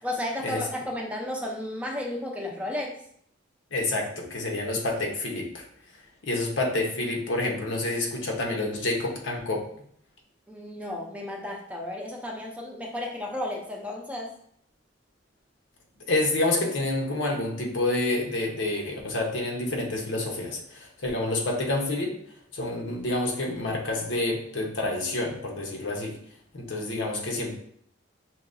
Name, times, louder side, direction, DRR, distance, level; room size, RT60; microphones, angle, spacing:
voice 1, 0.0-3.0 10.5-14.3, left 1 dB, 5° right, -1 dB, 0.6 m, -33 dB
voice 2, 3.7-5.6 6.2-9.6 16.1-22.1 22.5-26.2 26.5-27.5, left 2 dB, 80° left, 0 dB, 1.0 m, -28 dB
5.8 x 2.9 x 2.6 m, 0.66 s
head